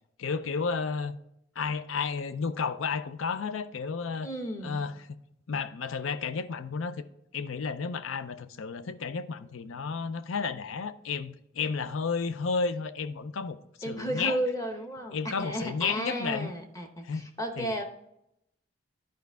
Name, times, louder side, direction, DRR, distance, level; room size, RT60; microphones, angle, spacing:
voice 1, 0.2-1.2 1.6-4.3 4.6-4.9 5.5-7.0 7.3-13.6 13.9-14.4 15.1-16.5 17.0-17.3 17.6-17.7, left 5 dB, 85° left, 0.5 m, -32 dB
voice 2, 4.2-4.9 13.8-17.8, right 1 dB, 15° left, 0.8 m, -33 dB
10.5 x 5.1 x 3.4 m
head